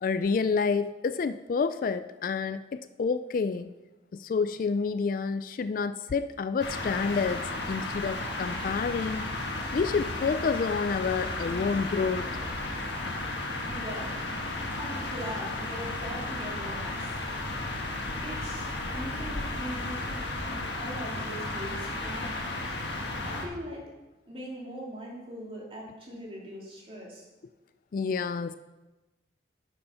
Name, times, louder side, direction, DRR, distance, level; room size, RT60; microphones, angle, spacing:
voice 1, 0.0-3.7 4.1-9.3 9.7-12.3 27.9-28.5, left 5 dB, 45° left, 12 dB, 0.3 m, -29 dB
sound 1, 6.6-23.5, left 2 dB, 70° left, 1.5 m, -34 dB
voice 2, 13.7-14.1 14.7-17.2 18.2-22.6 23.2-23.8 24.3-27.3, equal, 30° right, -3 dB, 2.7 m, -41 dB
9.1 x 6.9 x 5.6 m, 1.1 s
head